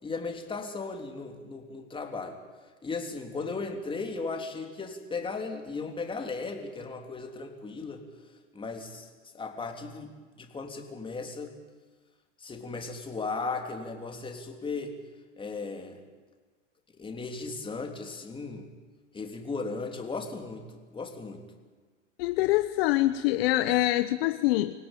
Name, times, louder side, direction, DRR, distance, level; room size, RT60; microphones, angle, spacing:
voice 1, 0.0-2.4 2.8-8.0 8.5-9.1 9.3-10.1 10.4-11.5 12.4-14.9 15.4-16.0 17.0-18.7 19.1-21.4, left 4 dB, 15° left, 3 dB, 3.2 m, -36 dB
voice 2, 22.2-24.7, left 16 dB, 55° left, 10 dB, 1.0 m, -25 dB
25.0 x 17.0 x 9.0 m, 1.4 s
hypercardioid pair, 115°, 37 cm